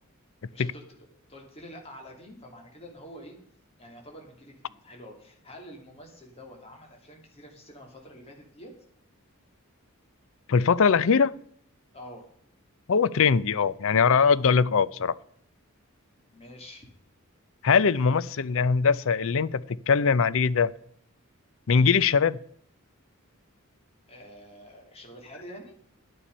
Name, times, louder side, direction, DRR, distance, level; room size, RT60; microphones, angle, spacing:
voice 1, 0.5-0.8 1.3-3.4 3.8-4.5 4.8-8.7 11.9-12.3 16.3-16.9 24.1-25.7, equal, 30° left, 1 dB, 2.9 m, -46 dB
voice 2, 10.5-11.3 12.9-15.2 17.6-20.7 21.7-22.4, left 5 dB, 65° left, 19 dB, 0.5 m, -21 dB
11.5 x 10.0 x 5.4 m, 0.64 s
head